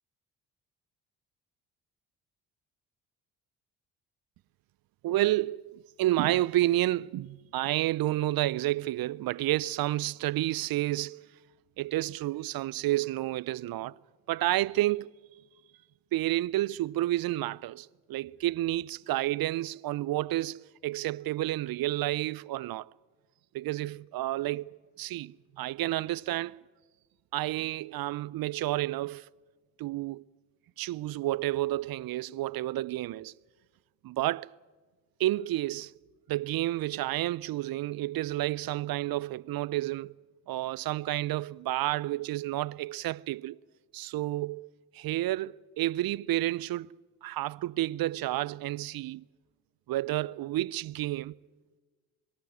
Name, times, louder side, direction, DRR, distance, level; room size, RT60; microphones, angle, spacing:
voice 1, 5.0-11.3 11.8-14.0 14.3-15.1 16.1-22.9 23.5-26.6 27.3-29.3 29.8-30.2 30.8-33.3 34.0-34.5 35.2-35.9 36.3-40.1 40.5-43.6 43.9-46.9 47.2-49.2 49.9-51.4, right 16 dB, 55° right, 0.6 m, -30 dB
23.5 x 13.5 x 9.3 m
hypercardioid pair, 50°, 44 cm